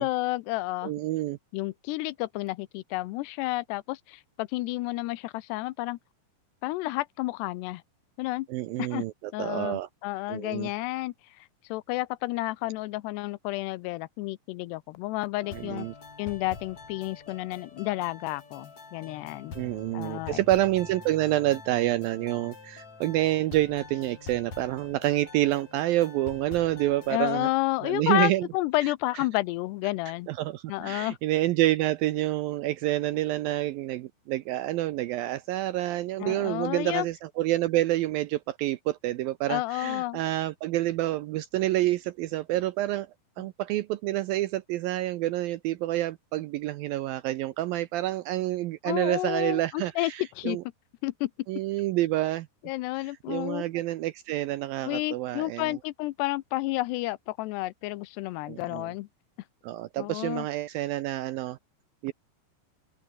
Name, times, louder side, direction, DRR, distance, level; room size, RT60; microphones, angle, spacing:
voice 1, 0.0-0.9 1.5-6.0 6.6-7.8 8.2-8.5 8.8-9.1 9.3-15.9 16.2-19.6 19.9-20.4 27.1-30.3 30.7-31.2 36.2-37.1 39.5-40.2 43.4-43.5 48.9-50.6 51.0-51.3 52.6-53.6 54.8-59.1 60.0-60.5, left 19 dB, 85° left, 2.7 m, -31 dB
voice 2, 0.8-1.4 8.5-9.1 9.4-9.9 10.3-10.7 15.5-15.9 19.6-27.5 27.8-28.5 30.3-43.1 43.4-50.6 51.5-52.5 53.3-55.8 58.5-58.9 59.6-61.6 62.0-62.1, right 15 dB, 80° right, 2.1 m, -28 dB
sound 1, 15.4-27.5, left 4 dB, 40° left, 6.1 m, -46 dB
open air
omnidirectional pair, 4.9 m